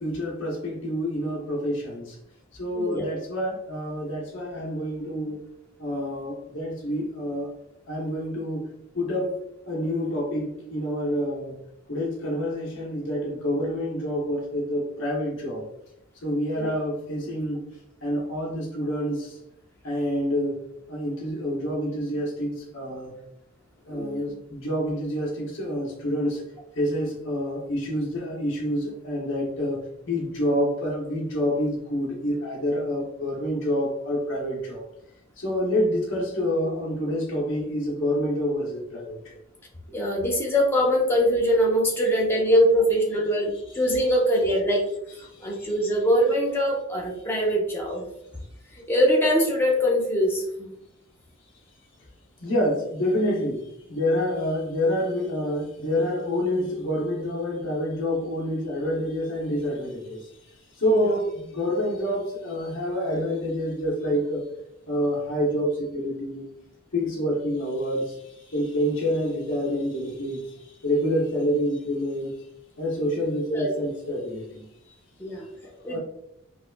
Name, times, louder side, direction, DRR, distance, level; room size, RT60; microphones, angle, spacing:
voice 1, 0.0-2.2 2.5-5.4 5.8-7.5 7.9-8.7 8.9-9.4 9.7-11.6 11.9-15.7 16.2-17.6 18.0-19.4 19.8-20.6 20.9-23.1 23.9-26.4 26.8-29.8 30.1-34.8 35.4-39.4 43.7-43.8 45.5-45.8 52.4-60.3 60.8-64.4 64.9-66.4 66.9-70.5 70.8-72.3 72.8-74.7 75.6-76.0, equal, 60° left, 0.9 m, -27 dB
voice 2, 2.7-3.0 16.5-16.7 23.9-24.3 39.9-44.8 45.4-48.0 48.9-50.8 60.9-61.0 73.5-73.7 75.2-75.4 75.8-76.0, equal, 10° left, 0.7 m, -22 dB
4.7 x 2.4 x 2.2 m
head